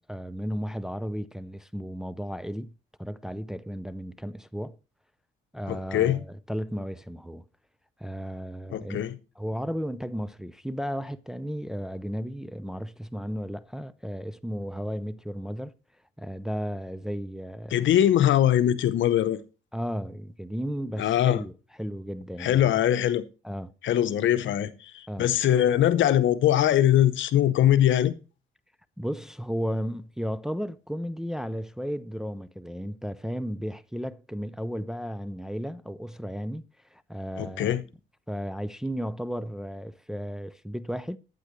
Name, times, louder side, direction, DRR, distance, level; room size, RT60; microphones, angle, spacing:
voice 1, 0.0-2.7 3.0-4.8 5.5-7.4 8.0-9.0 9.4-15.7 16.2-17.7 19.7-21.5 21.8-22.8 23.4-23.7 25.1-25.3 29.0-36.6 36.9-37.8 38.3-41.2, equal, 5° right, 0.5 m, -34 dB
voice 2, 5.7-6.2 8.7-9.2 17.7-19.4 21.0-21.4 22.4-23.2 23.8-28.1 37.4-37.8, left 11 dB, 75° left, 0.9 m, -22 dB
12.0 x 9.1 x 3.2 m
cardioid pair, 90°, 20 cm